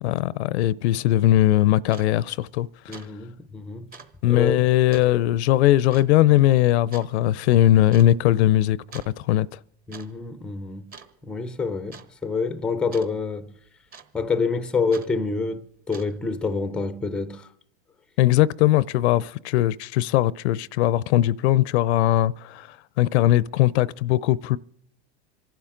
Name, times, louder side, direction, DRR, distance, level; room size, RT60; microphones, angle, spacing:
voice 1, 0.0-3.0 4.2-9.6 18.2-24.6, left 14 dB, 70° left, 0.6 m, -20 dB
sound 1, 1.4-1.5 1.9-2.1 2.5-2.7 2.9-3.1 3.4-3.5 3.9-4.1 4.9-5.1 5.9-6.1 6.9-7.1 7.9-8.1 8.9-9.2 9.7-10.1 10.3-10.6 10.9-11.4 11.9-12.1 12.9-13.1 13.9-14.3 14.9-15.1 15.8-16.3, right 5 dB, 25° right, 1.2 m, -45 dB
voice 2, 2.9-3.9 4.3-4.6 9.9-10.9 11.2-13.5 14.1-17.5, left 4 dB, 5° left, 0.5 m, -27 dB
27.0 x 11.5 x 3.8 m
supercardioid pair, 125°, 34 cm